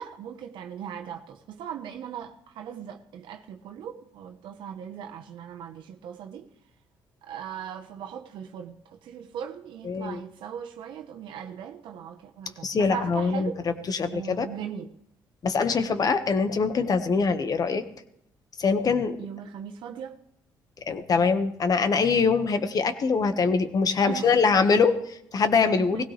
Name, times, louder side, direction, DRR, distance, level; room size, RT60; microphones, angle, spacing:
voice 1, 0.0-6.5 7.2-13.6 14.1-14.9 19.2-20.2 24.0-24.5 25.8-26.0, right 8 dB, 80° right, 1.2 m, -39 dB
voice 2, 9.8-10.2 12.6-13.5 13.9-14.5 15.4-17.8 18.6-19.2 20.9-26.0, left 5 dB, 50° left, 1.6 m, -23 dB
19.0 x 16.5 x 3.4 m
cardioid pair, 75°, 8 cm